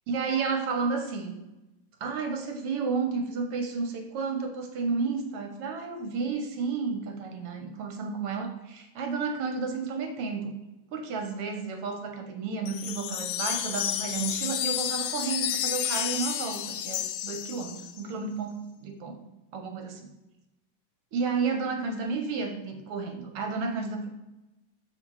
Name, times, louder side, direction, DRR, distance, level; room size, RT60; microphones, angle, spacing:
voice 1, 0.1-1.4 2.0-10.5 10.9-19.2 19.5-20.1 21.1-24.1, right 5 dB, 70° right, 5 dB, 1.4 m, -32 dB
sound 1, 12.7-18.0, left 11 dB, 90° left, 2.0 m, -31 dB
6.9 x 6.3 x 4.7 m, 0.97 s
omnidirectional pair, 3.4 m